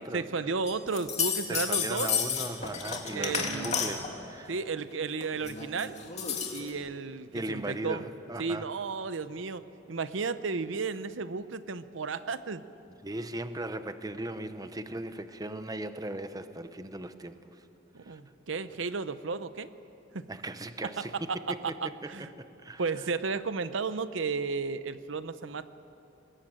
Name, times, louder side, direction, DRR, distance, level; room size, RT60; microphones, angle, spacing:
voice 1, 0.1-2.1 3.1-3.9 4.5-6.0 6.5-8.0 8.4-9.6 9.9-12.6 17.9-19.7 20.1-20.3 20.8-21.8 22.1-22.3 22.8-25.7, right 4 dB, 75° right, 13 dB, 0.7 m, -33 dB
sound 1, 0.7-4.1 5.2-6.7, left 7 dB, 35° left, 2.5 m, -32 dB
voice 2, 1.5-4.5 7.3-8.7 13.0-17.6 18.0-18.2 20.3-22.8, right 1 dB, 20° right, 10 dB, 0.9 m, -38 dB
21.5 x 20.5 x 9.0 m, 2.8 s
head